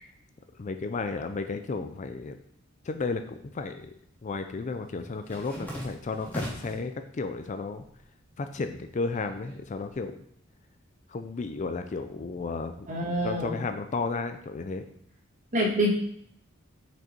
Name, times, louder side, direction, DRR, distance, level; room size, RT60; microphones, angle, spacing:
voice 1, 0.6-2.4 2.8-3.9 4.2-7.8 8.4-10.2 11.1-12.9 13.2-14.8, left 4 dB, 35° left, 8 dB, 0.4 m, -33 dB
sound 1, 3.5-3.8 4.1-6.9 7.3-8.0 8.3-10.0, equal, 10° left, 1.9 m, -40 dB
voice 2, 12.9-13.6 15.5-15.9, equal, 35° right, -3 dB, 1.8 m, -26 dB
6.2 x 5.3 x 4.4 m, 0.69 s
head